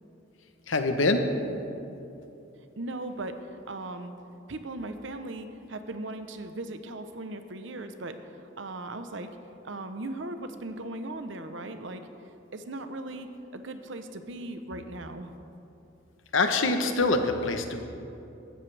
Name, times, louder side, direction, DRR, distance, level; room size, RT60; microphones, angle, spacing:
voice 1, 0.7-1.2 16.3-17.8, left 3 dB, 75° left, 6 dB, 1.0 m, -24 dB
voice 2, 2.8-4.1 4.5-8.2 8.6-9.3 9.6-12.1 12.5-15.3, right 2 dB, 65° right, 8 dB, 0.8 m, -38 dB
15.5 x 13.0 x 3.4 m, 2.8 s
head